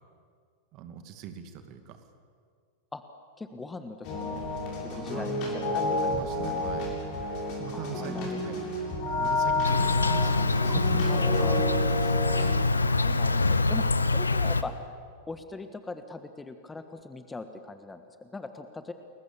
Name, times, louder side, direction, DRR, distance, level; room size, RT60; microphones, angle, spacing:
voice 1, 0.7-2.0 5.1-7.0 7.6-8.6 9.2-11.0, right 7 dB, 40° right, 7 dB, 2.4 m, -40 dB
voice 2, 3.4-4.4 4.8-5.3 5.7-6.7 7.7-8.5 11.1-11.6 12.8-14.7 15.3-18.9, left 3 dB, 10° left, 9 dB, 1.5 m, -41 dB
sound 1, 4.0-12.6, left 2 dB, 40° left, 7.8 m, -30 dB
Insect, 9.6-14.6, left 3 dB, 80° left, 0.9 m, -25 dB
30.0 x 22.0 x 7.1 m, 2.1 s
figure-of-eight pair, 90°, 0 cm